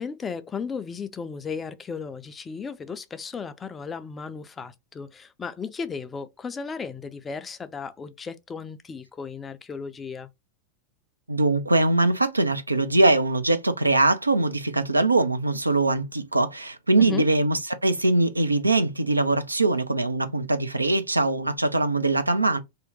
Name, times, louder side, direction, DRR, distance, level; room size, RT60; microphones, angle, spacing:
voice 1, 0.0-10.3 17.0-17.3, left 5 dB, 20° left, 0.4 m, -35 dB
voice 2, 11.3-22.6, right 2 dB, 85° right, 0.4 m, -22 dB
2.7 x 2.0 x 3.9 m
figure-of-eight pair, 90°, 0 cm